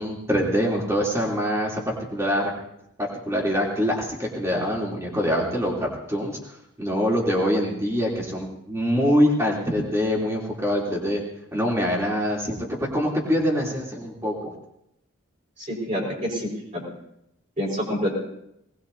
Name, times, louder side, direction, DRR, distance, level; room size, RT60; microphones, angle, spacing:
voice 1, 0.0-2.5 3.0-11.2 11.5-14.5, equal, 15° right, -3 dB, 3.1 m, -24 dB
voice 2, 15.7-16.8 17.6-18.1, equal, 35° right, -2 dB, 4.9 m, -27 dB
20.5 x 19.5 x 2.7 m, 0.81 s
head